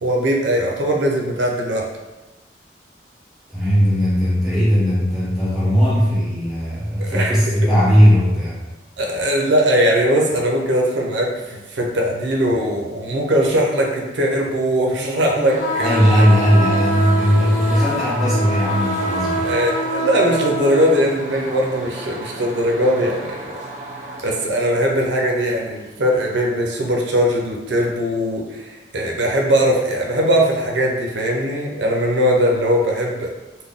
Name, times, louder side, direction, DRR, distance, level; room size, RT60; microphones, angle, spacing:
voice 1, 0.0-1.8 7.0-7.3 9.0-16.2 19.4-23.4 24.2-33.3, equal, 85° right, -1 dB, 0.6 m, -20 dB
voice 2, 3.5-8.6 15.8-19.4, equal, 5° right, -10 dB, 1.2 m, -17 dB
sound 1, 15.4-24.3, right 1 dB, 40° right, 0.6 m, -34 dB
sound 2, 15.6-21.0, right 1 dB, 50° left, 0.8 m, -24 dB
3.9 x 2.2 x 3.5 m, 1.1 s
head